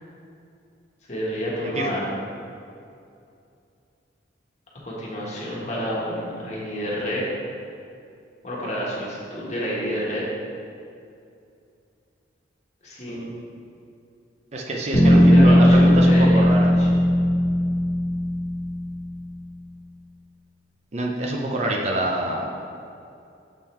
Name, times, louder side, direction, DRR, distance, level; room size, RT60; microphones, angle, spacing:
voice 1, 1.1-2.1 4.8-7.2 8.4-10.2 12.8-13.3 14.9-16.5 16.8-16.9, equal, 40° left, -6 dB, 1.4 m, -29 dB
voice 2, 14.5-16.8 20.9-22.5, right 1 dB, 35° right, -1 dB, 0.5 m, -25 dB
sound 1, 14.9-19.0, equal, 65° left, 1.3 m, -17 dB
7.2 x 3.7 x 4.4 m, 2.5 s
head